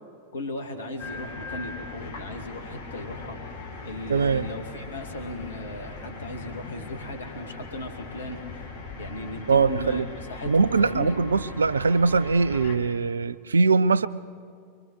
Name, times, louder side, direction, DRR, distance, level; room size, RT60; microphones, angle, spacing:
voice 1, 0.3-3.4 3.8-8.6 9.0-10.0 10.3-11.2, left 1 dB, 70° left, 2.4 m, -36 dB
sound 1, 1.0-12.8, left 3 dB, 50° left, 2.7 m, -40 dB
voice 2, 4.1-4.5 9.5-10.1 10.5-14.1, right 4 dB, 75° right, 0.5 m, -22 dB
24.0 x 24.0 x 4.9 m
figure-of-eight pair, 90°, 0 cm